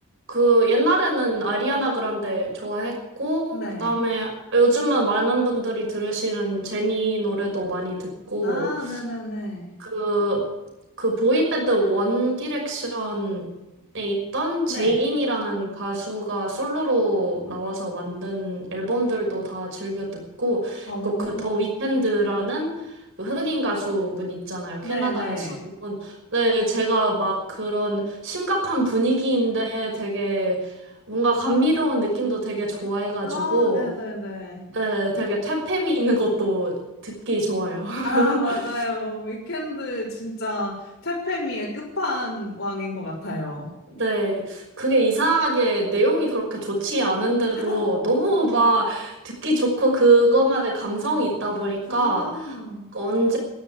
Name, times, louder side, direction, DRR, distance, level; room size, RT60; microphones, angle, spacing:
voice 1, 0.3-9.0 9.8-10.4 11.0-13.5 13.9-22.7 23.2-30.7 31.1-33.8 34.7-38.6 43.9-52.6 52.9-53.4, right 1 dB, 55° right, 0 dB, 5.9 m, -23 dB
voice 2, 3.5-3.9 8.4-9.7 14.7-14.9 20.9-21.6 24.8-25.6 33.2-34.6 38.0-43.7 47.5-48.1 51.9-52.9, left 1 dB, 60° left, -7 dB, 4.1 m, -30 dB
12.5 x 11.5 x 9.9 m, 0.97 s
head